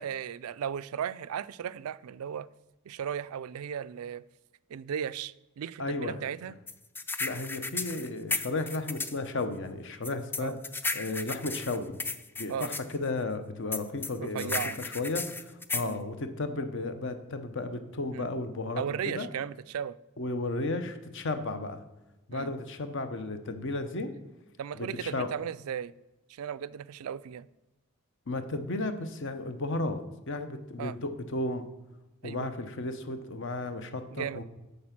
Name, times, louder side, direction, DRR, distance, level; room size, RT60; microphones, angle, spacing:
voice 1, 0.0-2.5 2.9-4.2 4.7-6.5 10.4-10.6 12.5-12.7 14.2-14.8 15.8-16.0 18.1-18.3 18.8-20.0 22.3-22.5 24.6-25.9 26.3-27.5 30.8-31.0 32.2-32.5 34.1-34.4, right 8 dB, 80° right, 17 dB, 0.4 m, -36 dB
voice 2, 5.8-6.2 7.2-10.5 10.9-12.0 12.4-19.3 20.2-21.8 22.3-24.1 24.7-25.3 28.3-30.0 30.3-31.7 32.2-34.4, left 2 dB, 55° left, 9 dB, 0.9 m, -34 dB
sound 1, 6.7-9.2 10.0-12.8 13.7-15.9, left 3 dB, 10° left, 0.3 m, -34 dB
8.5 x 6.9 x 5.9 m, 1.1 s
head